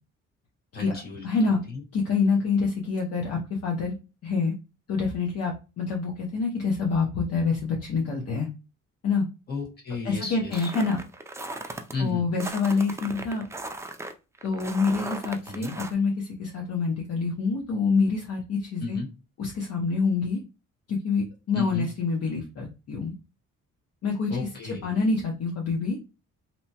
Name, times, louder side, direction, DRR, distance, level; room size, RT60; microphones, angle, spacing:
voice 1, 0.7-1.3 1.7-1.8 9.5-10.7 11.9-12.3 15.4-15.8 18.8-19.1 21.5-21.9 24.3-24.9, left 3 dB, 30° left, -2 dB, 1.4 m, -33 dB
voice 2, 1.2-1.6 1.9-3.9 4.2-4.5 4.9-8.5 9.0-9.2 10.0-11.0 12.0-13.4 14.4-19.0 19.4-20.4 20.9-23.1 24.0-24.5 24.8-26.0, left 4 dB, 55° left, -1 dB, 0.7 m, -26 dB
sound 1, 10.5-11.9 12.4-15.9, right 2 dB, 10° right, 0.3 m, -37 dB
2.9 x 2.1 x 2.8 m, 0.30 s
cardioid pair, 90°, 30 cm